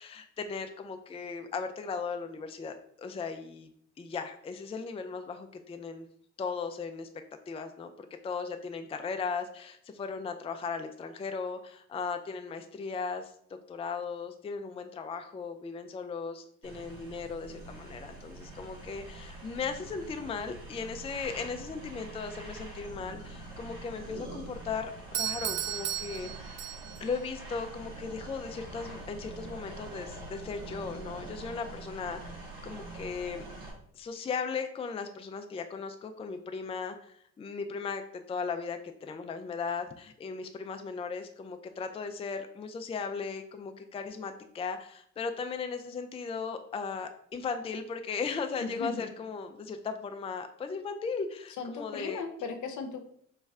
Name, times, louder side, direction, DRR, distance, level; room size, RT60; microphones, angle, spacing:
voice 1, 0.0-3.7 4.0-6.1 6.4-7.1 7.5-13.3 13.7-26.6 27.0-32.4 32.6-33.4 33.9-52.2, left 5 dB, 20° left, 7 dB, 0.4 m, -37 dB
sound 1, 16.6-33.7, right 2 dB, 90° right, 1.6 m, -45 dB
Doorbell, 25.1-27.1, right 11 dB, 55° right, 0.4 m, -35 dB
voice 2, 48.6-49.1 51.6-53.0, left 5 dB, 60° left, 6 dB, 0.7 m, -37 dB
3.2 x 3.1 x 3.5 m, 0.66 s
hypercardioid pair, 55°, 33 cm